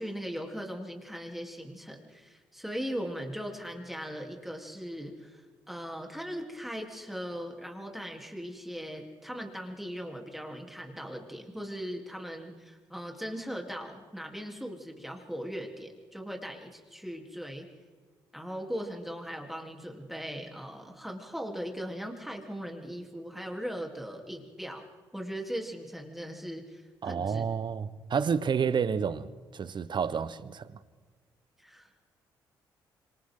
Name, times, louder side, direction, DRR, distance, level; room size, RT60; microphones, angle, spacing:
voice 1, 0.0-17.7 18.3-24.8 25.1-27.5 31.6-32.1, equal, ahead, 3.6 m, -39 dB
voice 2, 27.0-30.8, right 6 dB, 50° right, 1.2 m, -30 dB
26.5 x 26.5 x 3.9 m
hypercardioid pair, 50°, 10 cm